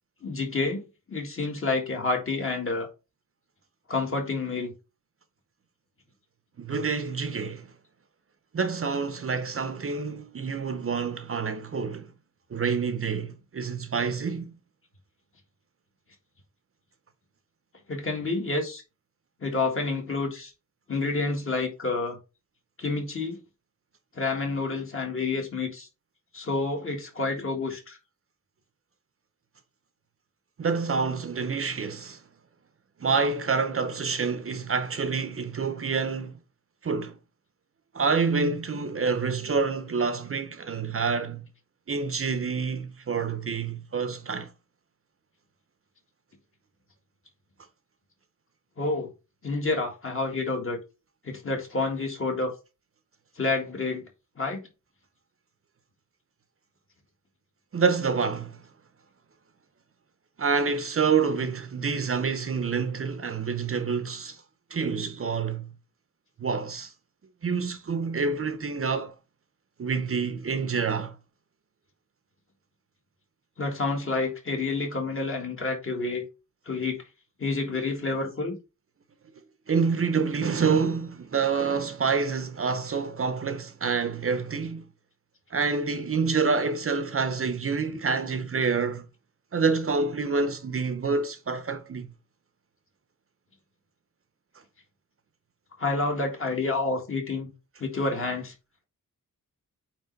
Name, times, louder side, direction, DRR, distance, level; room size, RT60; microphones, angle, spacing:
voice 1, 0.2-0.8 1.1-2.9 3.9-4.7 17.9-18.8 19.4-20.5 20.9-22.2 22.8-23.4 24.1-25.9 26.3-28.0 48.8-49.1 49.4-50.8 51.2-52.5 53.4-54.0 54.4-54.7 73.6-76.3 76.7-77.0 77.4-78.6 95.8-97.5 97.8-98.5, left 3 dB, 40° left, 1.7 m, -29 dB
voice 2, 6.6-7.7 8.5-12.1 12.5-14.5 30.6-32.2 33.0-36.3 36.8-37.1 37.9-41.4 41.9-44.5 57.7-58.6 60.4-64.4 64.7-65.7 66.4-66.9 67.4-69.1 69.8-71.2 79.7-84.9 85.5-89.1 89.5-92.1, right 5 dB, 45° right, 0.6 m, -27 dB
8.7 x 3.1 x 3.9 m
wide cardioid pair, 170°, 32 cm